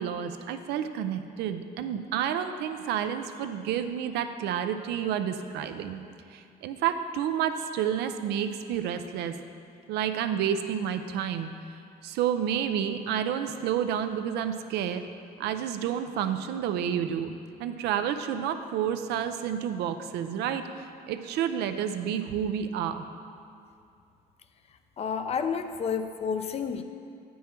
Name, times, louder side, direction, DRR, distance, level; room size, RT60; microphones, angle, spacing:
voice 1, 0.0-6.0 6.3-9.3 9.9-11.5 12.0-15.0 15.4-17.3 17.6-20.6 21.1-23.0, right 9 dB, 80° right, 8 dB, 0.5 m, -30 dB
voice 2, 25.0-26.8, left 6 dB, 40° left, 8 dB, 0.5 m, -30 dB
8.5 x 5.5 x 4.4 m, 2.5 s
cardioid pair, 110°, 17 cm